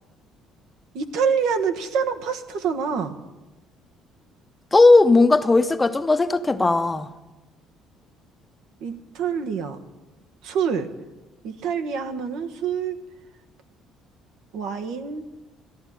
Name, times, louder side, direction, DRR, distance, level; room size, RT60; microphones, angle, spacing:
voice 1, 0.9-3.2 8.8-9.8 10.4-10.9 11.4-13.0 14.5-15.2, right 6 dB, 75° right, 1.3 m, -26 dB
voice 2, 4.7-7.1, left 3 dB, 15° left, 0.7 m, -17 dB
14.0 x 11.0 x 8.8 m
cardioid pair, 115°, 0 cm